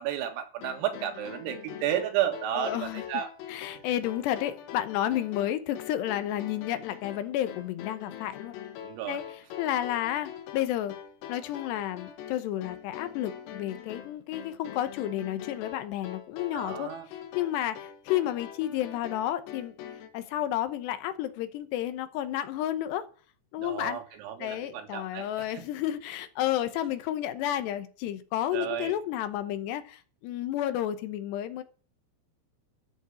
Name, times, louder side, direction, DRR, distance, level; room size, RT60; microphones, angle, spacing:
voice 1, 0.0-3.3 8.8-9.2 16.5-17.1 23.6-25.7 28.5-29.0, right 10 dB, 85° right, 4.4 m, -32 dB
sound 1, 0.6-20.1, left 10 dB, 90° left, 4.3 m, -43 dB
voice 2, 2.6-3.0 3.5-8.6 9.0-11.0 11.3-19.7 20.1-23.1 23.5-24.0 24.4-31.6, left 12 dB, 75° left, 2.7 m, -31 dB
13.5 x 7.3 x 8.4 m
omnidirectional pair, 5.8 m